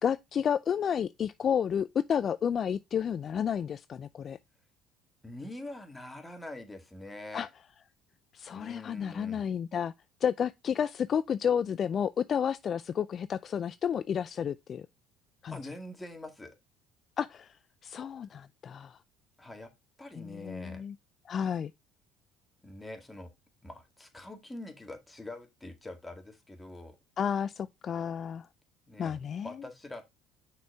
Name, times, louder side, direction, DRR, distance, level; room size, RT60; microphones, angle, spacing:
voice 1, 0.0-4.4 7.3-7.5 8.3-9.9 10.2-14.9 15.4-15.6 17.2-17.5 17.8-19.0 20.2-20.9 21.3-21.7 27.2-28.5 29.0-29.5, left 8 dB, 45° left, 0.3 m, -31 dB
voice 2, 5.2-7.5 8.5-9.5 15.5-16.5 19.4-19.7 20.0-20.8 22.6-23.3 23.6-27.0 28.9-29.2 29.4-30.0, left 1 dB, 10° left, 1.9 m, -44 dB
6.0 x 4.5 x 4.7 m
supercardioid pair, 90°, 0 cm